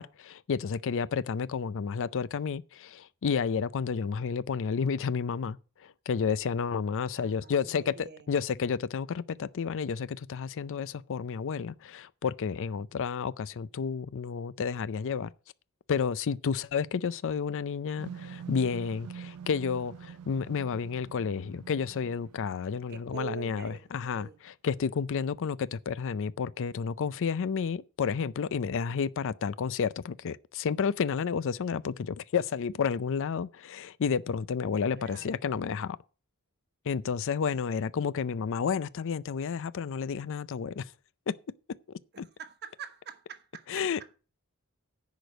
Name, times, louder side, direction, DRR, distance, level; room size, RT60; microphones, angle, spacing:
voice 1, 0.0-5.6 5.8-15.3 15.9-36.0 36.9-40.8 41.3-41.4 42.2-42.3 43.7-44.0, left 6 dB, 60° left, 0.4 m, -31 dB
voice 2, 7.1-8.3 22.9-23.8 24.1-24.4 35.0-35.4 42.1-44.2, right 7 dB, 50° right, 1.2 m, -45 dB
sound 1, 18.0-23.3, right 7 dB, 90° right, 0.4 m, -46 dB
10.5 x 5.0 x 7.8 m
head